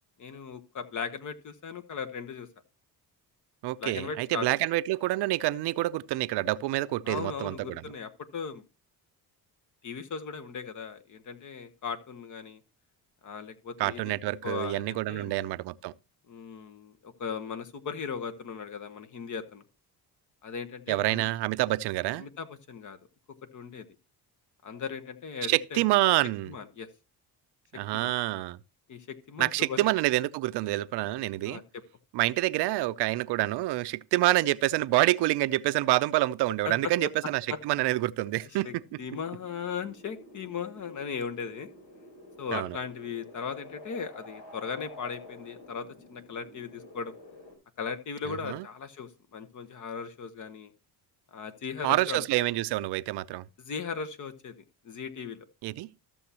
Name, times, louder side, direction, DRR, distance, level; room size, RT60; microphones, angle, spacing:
voice 1, 0.2-2.5 3.8-4.5 7.0-8.6 9.8-12.6 13.2-14.1 14.4-15.4 16.3-19.6 20.4-21.2 22.1-23.0 23.5-23.9 24.6-25.8 26.5-26.9 27.9-28.1 28.9-29.9 31.4-31.6 36.6-36.9 37.5-37.6 38.6-41.7 42.4-47.1 47.8-50.7 51.3-52.2 53.6-54.5 54.8-55.5, left 6 dB, 50° left, 1.1 m, -37 dB
voice 2, 3.6-7.8 13.8-15.9 20.9-22.2 25.5-26.5 27.7-28.6 29.4-31.6 32.1-38.7 42.5-42.8 48.3-48.6 51.8-53.4 55.6-55.9, right 17 dB, 80° right, 0.6 m, -27 dB
sound 1, 38.8-47.6, left 1 dB, 70° left, 4.0 m, -50 dB
13.5 x 7.0 x 2.9 m
cardioid pair, 115°, 39 cm